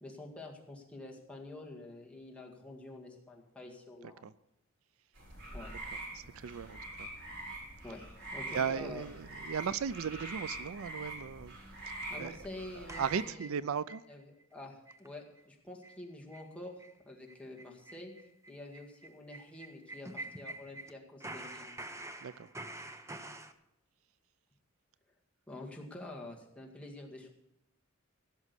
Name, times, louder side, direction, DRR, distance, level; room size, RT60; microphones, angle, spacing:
voice 1, 0.0-4.2 5.5-5.7 7.8-9.1 12.1-13.6 14.1-16.8 17.0-21.8 25.5-27.3, left 2 dB, 5° left, 2.0 m, -48 dB
sound 1, 5.2-13.2, right 2 dB, 60° right, 4.9 m, -44 dB
voice 2, 6.1-7.1 8.5-11.6 12.2-12.4 12.8-14.0 22.2-22.5, right 7 dB, 75° right, 0.4 m, -36 dB
sound 2, 12.9-14.0 14.4-14.5 14.9-15.1 15.4-15.5 15.8-16.0 16.3-16.5 16.8-16.9 17.3-20.9 21.2-23.5, right 2 dB, 15° right, 0.8 m, -46 dB
16.0 x 6.3 x 8.2 m
head